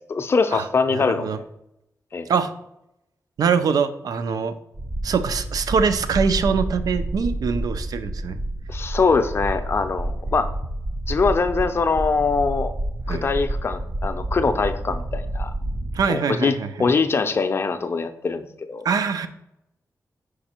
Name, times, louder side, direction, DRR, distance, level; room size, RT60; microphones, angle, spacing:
voice 1, 0.1-1.4 2.1-2.3 8.7-10.5 11.1-12.7 13.1-15.5 16.1-18.9, left 4 dB, 40° left, 9 dB, 0.4 m, -23 dB
voice 2, 0.9-1.4 2.3-2.5 3.4-4.5 5.0-8.4 13.1-13.2 15.9-16.9 18.8-19.3, right 6 dB, 85° right, 11 dB, 0.5 m, -23 dB
sound 1, 4.7-16.1, right 1 dB, 25° right, 0.4 m, -29 dB
5.3 x 4.9 x 4.3 m, 0.84 s
wide cardioid pair, 160°, 6 cm